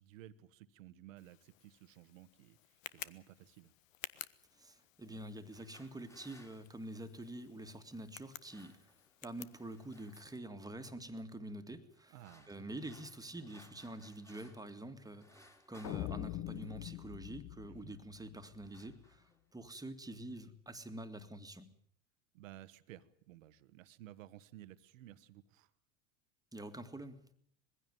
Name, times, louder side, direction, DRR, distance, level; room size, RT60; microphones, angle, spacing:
voice 1, 0.0-3.7 12.1-12.7 17.7-17.9 22.3-25.7, right 13 dB, 85° right, 1.3 m, -56 dB
Tick, 1.2-10.4, left 13 dB, 85° left, 1.1 m, -54 dB
voice 2, 4.5-8.9 9.2-12.2 12.5-21.7 26.5-27.3, right 1 dB, 10° right, 2.0 m, -47 dB
sound 1, 5.3-7.5 8.2-9.2 9.5-10.4 10.8-11.2 11.9-14.8 15.0-17.1 17.9-18.1 18.4-19.5, left 1 dB, 5° left, 2.8 m, -64 dB
sound 2, 15.8-18.9, left 14 dB, 45° left, 1.2 m, -44 dB
21.0 x 16.0 x 9.3 m
hypercardioid pair, 100°, 39 cm